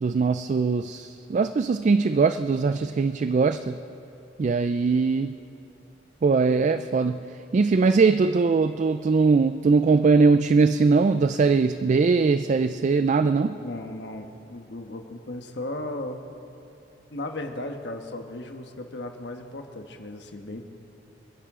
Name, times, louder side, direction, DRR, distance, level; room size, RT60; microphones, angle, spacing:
voice 1, 0.0-3.8 4.4-5.4 6.2-7.2 7.5-13.5, right 4 dB, 40° right, 11 dB, 0.3 m, -21 dB
voice 2, 13.6-16.2 17.1-20.7, left 1 dB, 65° left, 5 dB, 1.2 m, -36 dB
29.0 x 10.5 x 3.7 m, 2.8 s
head